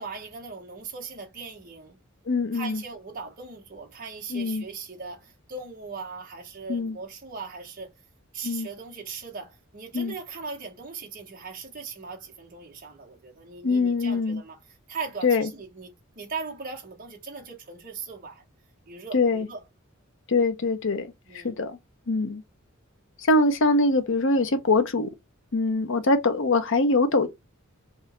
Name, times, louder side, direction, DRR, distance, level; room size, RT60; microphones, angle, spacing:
voice 1, 0.0-2.0 2.5-7.9 8.3-14.6 14.9-18.4 18.9-19.6 21.3-21.6, right 4 dB, 40° right, 1.5 m, -39 dB
voice 2, 2.3-2.8 4.3-4.6 6.7-7.0 8.4-8.7 9.9-10.1 13.6-14.4 15.2-15.5 19.1-19.5 20.3-21.1 21.3-21.8 22.1-22.4 23.2-25.1 25.5-27.3, left 3 dB, 65° left, 0.8 m, -23 dB
3.6 x 2.6 x 4.3 m
head